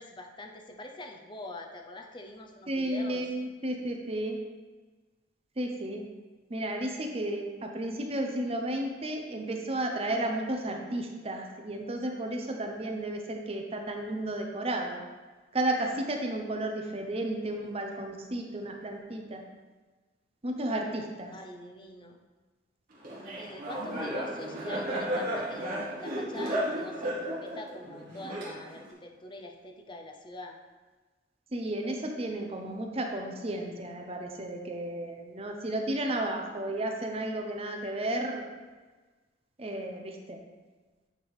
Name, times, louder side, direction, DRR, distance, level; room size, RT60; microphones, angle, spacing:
voice 1, 0.0-3.2 21.3-22.2 23.2-30.6, left 1 dB, 25° left, 3 dB, 0.6 m, -44 dB
voice 2, 2.7-4.4 5.6-6.0 6.5-15.0 15.5-19.4 20.4-21.3 31.5-38.5 39.6-40.4, right 1 dB, 30° right, 2 dB, 0.7 m, -33 dB
Laughter, 23.0-28.9, right 1 dB, 45° right, 1.9 m, -34 dB
8.8 x 3.5 x 4.8 m, 1.3 s
head